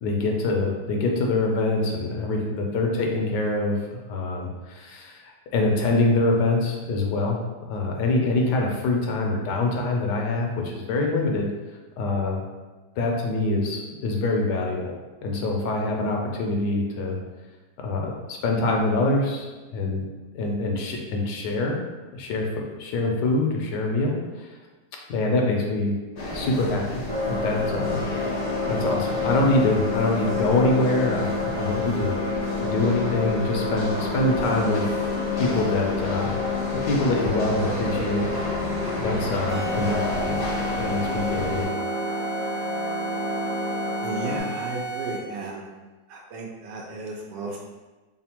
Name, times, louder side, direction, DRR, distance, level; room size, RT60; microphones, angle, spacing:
voice 1, 0.0-5.2 5.5-7.4 7.7-11.5 12.0-12.4 13.0-14.9 15.2-17.2 17.8-19.5 19.7-20.1 20.3-21.8 22.1-22.5 22.8-24.5 25.1-26.0 26.3-28.0 28.6-32.2 32.6-34.9 35.4-36.4 36.7-38.3 39.0-40.4 40.8-41.7, left 2 dB, 85° left, 0 dB, 1.2 m, -25 dB
sound 1, 26.2-41.7, left 1 dB, 65° left, 0.4 m, -33 dB
sound 2, 27.1-44.4, left 3 dB, 30° right, 0.9 m, -29 dB
sound 3, 39.5-45.4, right 5 dB, 55° right, 0.3 m, -33 dB
voice 2, 44.0-45.7 46.1-47.6, right 2 dB, 80° right, -2 dB, 1.2 m, -34 dB
3.3 x 2.1 x 4.3 m, 1.2 s
omnidirectional pair, 1.9 m